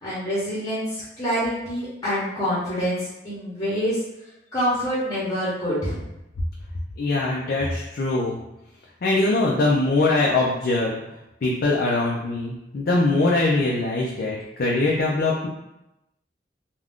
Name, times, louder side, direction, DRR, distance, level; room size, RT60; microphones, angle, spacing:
voice 1, 0.0-4.0 4.5-6.0, equal, 20° left, -8 dB, 0.8 m, -26 dB
voice 2, 7.0-8.4 9.0-11.0 11.4-15.5, left 2 dB, 55° left, -3 dB, 0.4 m, -22 dB
2.4 x 2.2 x 3.5 m, 0.90 s
head